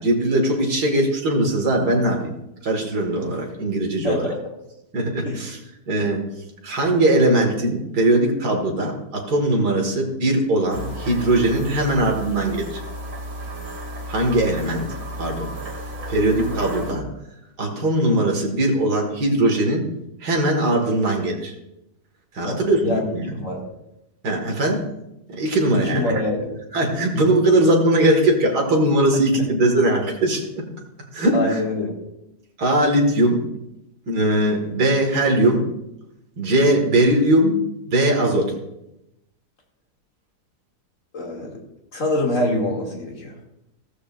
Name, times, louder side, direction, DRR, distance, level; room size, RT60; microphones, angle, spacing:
voice 1, 0.0-2.3 2.6-4.3 4.9-5.6 5.9-6.2 6.6-12.8 14.1-14.9 15.2-15.5 16.1-17.0 17.6-19.9 20.2-21.5 22.3-23.4 24.2-24.9 25.3-26.2 26.7-30.7 31.1-31.6 32.6-33.4 34.1-35.6 36.4-37.6 37.9-38.5, right 1 dB, 80° right, 1 dB, 2.5 m, -20 dB
voice 2, 4.0-4.3 5.2-5.5 22.4-23.0 23.3-23.6 25.8-26.6 31.3-32.0 41.1-41.6 41.9-43.3, left 1 dB, 50° left, -1 dB, 2.9 m, -25 dB
sound 1, 10.7-16.9, right 1 dB, 60° right, 3.1 m, -33 dB
15.5 x 14.5 x 2.6 m, 0.88 s
omnidirectional pair, 1.7 m